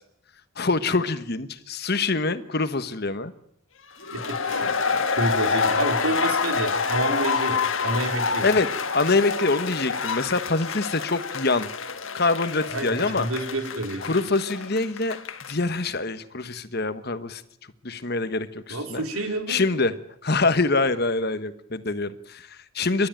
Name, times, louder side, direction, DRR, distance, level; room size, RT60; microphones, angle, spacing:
voice 1, 0.6-3.3 8.2-8.7 8.9-11.7 12.1-13.3 14.0-15.2 15.5-17.4 17.8-19.0 19.5-19.9 20.2-23.1, left 3 dB, 45° left, 12 dB, 1.3 m, -25 dB
sound 1, 4.0-15.7, left 5 dB, 65° left, 1.7 m, -27 dB
voice 2, 4.1-8.5 12.7-14.0 18.7-19.6, right 2 dB, 90° right, 5 dB, 4.2 m, -29 dB
29.5 x 13.0 x 9.2 m, 0.76 s
head